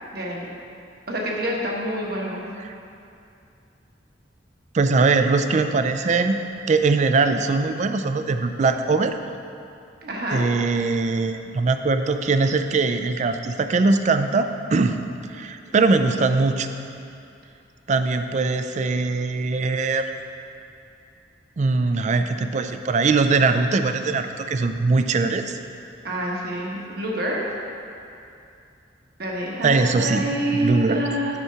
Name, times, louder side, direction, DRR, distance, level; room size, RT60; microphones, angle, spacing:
voice 1, 0.1-0.5 1.1-2.5 10.0-10.5 26.0-27.4 29.2-31.4, right 1 dB, 55° right, -3 dB, 1.3 m, -27 dB
voice 2, 4.7-6.4 6.7-9.1 10.3-15.0 15.3-16.7 17.9-20.0 21.6-25.6 29.6-30.3 30.5-31.0, right 3 dB, 40° right, 8 dB, 0.4 m, -21 dB
8.0 x 4.8 x 5.7 m, 2.6 s
head